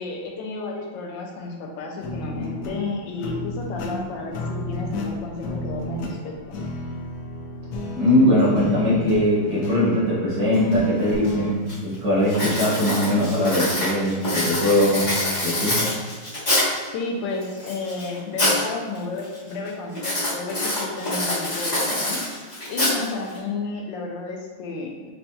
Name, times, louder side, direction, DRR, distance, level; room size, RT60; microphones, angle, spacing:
voice 1, 0.0-6.6 16.8-22.2 22.7-25.1, left 3 dB, 85° left, 0 dB, 1.3 m, -32 dB
sound 1, 2.0-11.5, left 2 dB, 70° left, 1.0 m, -32 dB
voice 2, 7.9-15.1 15.4-15.8, left 1 dB, 75° right, -7 dB, 1.7 m, -21 dB
Writing, 11.1-11.2 11.7-11.9 12.3-16.8 17.4-18.6 18.9-19.4 19.9-23.4, left 1 dB, 30° left, 1.0 m, -25 dB
5.1 x 2.7 x 2.2 m, 1.3 s
omnidirectional pair, 2.0 m